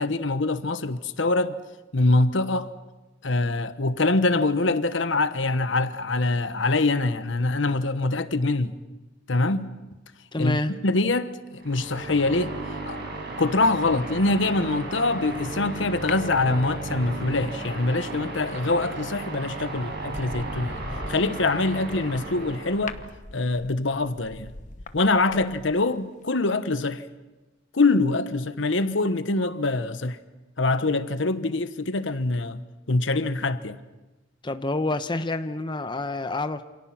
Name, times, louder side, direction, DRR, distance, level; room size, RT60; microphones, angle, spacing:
voice 1, 0.0-1.6 1.9-2.7 3.2-8.8 9.3-9.7 10.4-10.6 10.8-12.5 12.9-13.0 13.4-20.8 21.1-23.0 23.3-24.5 24.9-27.1 27.7-30.2 30.6-32.6 32.9-33.8, left 2 dB, 70° left, 1.1 m, -24 dB
voice 2, 10.3-10.7 34.4-36.6, left 2 dB, 25° left, 0.9 m, -28 dB
sound 1, 11.5-23.1, right 2 dB, 60° right, 6.4 m, -35 dB
sound 2, 16.1-17.1 19.0-19.3 19.7-25.9 26.2-26.3, left 3 dB, 40° left, 1.1 m, -41 dB
28.0 x 27.5 x 6.0 m
head